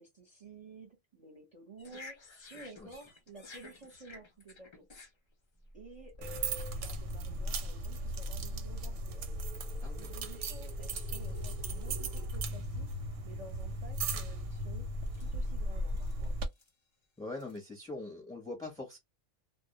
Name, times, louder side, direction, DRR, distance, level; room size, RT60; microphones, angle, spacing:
voice 1, 0.0-2.2 2.5-4.9 5.7-9.3 9.9-12.9 13.2-14.9 15.2-16.3, right 3 dB, 35° right, 0.7 m, -52 dB
sound 1, 1.8-6.2 6.9-7.1 7.4-7.8 8.5-8.7 9.6-9.7 10.0-13.0 13.3-14.7 15.1-15.3 15.9-16.7 17.3-17.6, left 3 dB, 50° left, 0.3 m, -54 dB
voice 2, 2.5-2.9 9.8-10.1 17.2-19.0, left 2 dB, 5° left, 0.6 m, -43 dB
sound 2, 6.2-16.5, right 1 dB, 90° right, 0.9 m, -37 dB
sound 3, 7.2-12.3, right 4 dB, 65° right, 0.4 m, -55 dB
2.1 x 2.1 x 2.8 m
omnidirectional pair, 1.2 m